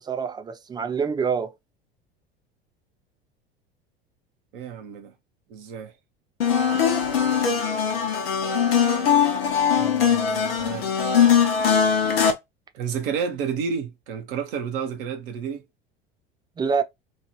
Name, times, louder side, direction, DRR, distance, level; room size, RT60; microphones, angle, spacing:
voice 1, 0.0-1.5 16.6-16.8, right 6 dB, 15° right, 0.4 m, -26 dB
voice 2, 4.5-5.1 5.5-5.9 9.8-10.9 12.7-15.6, right 6 dB, 65° right, 1.0 m, -31 dB
sound 1, 6.4-12.3, left 7 dB, 70° left, 0.8 m, -21 dB
3.1 x 2.5 x 2.9 m
figure-of-eight pair, 75°, 31 cm